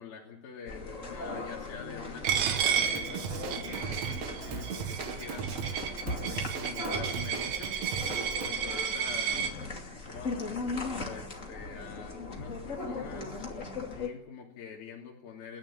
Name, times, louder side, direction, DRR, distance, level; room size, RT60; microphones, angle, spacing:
voice 1, 0.0-5.6 6.2-7.7 8.4-9.5 9.9-13.5 13.9-15.6, left 6 dB, 75° left, -3 dB, 4.9 m, -45 dB
sound 1, 0.7-14.1, left 3 dB, 25° left, 2.3 m, -39 dB
Drum kit / Drum, 2.3-8.5, right 7 dB, 60° right, 2.0 m, -38 dB
Coin (dropping), 2.3-9.5, right 8 dB, 80° right, 3.5 m, -32 dB
30.0 x 11.0 x 8.6 m, 0.76 s
omnidirectional pair, 4.3 m